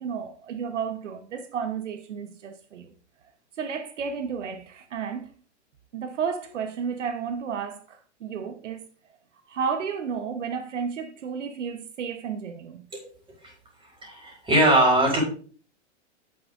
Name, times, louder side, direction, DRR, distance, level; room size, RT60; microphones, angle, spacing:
voice 1, 0.0-2.9 3.6-5.3 5.9-8.9 9.5-12.8, right 6 dB, 85° right, 1.1 m, -32 dB
voice 2, 14.0-15.2, right 1 dB, 15° right, 4.9 m, -21 dB
10.0 x 8.6 x 2.6 m
hypercardioid pair, 120°, 35 cm